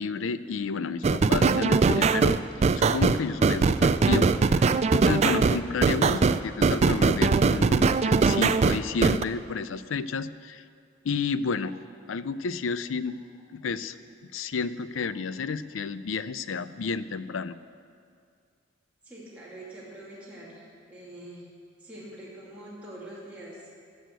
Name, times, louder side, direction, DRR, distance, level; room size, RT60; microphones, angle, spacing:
voice 1, 0.0-2.4 2.7-10.6 11.0-11.8 12.1-13.2 13.5-14.0 14.3-17.6, left 5 dB, 90° left, 14 dB, 0.5 m, -31 dB
sound 1, 1.0-9.2, right 4 dB, 35° right, 0.3 m, -21 dB
voice 2, 19.0-20.6 20.9-21.5 21.8-23.7, right 1 dB, 5° right, -9 dB, 2.7 m, -44 dB
15.5 x 6.5 x 8.0 m, 2.2 s
head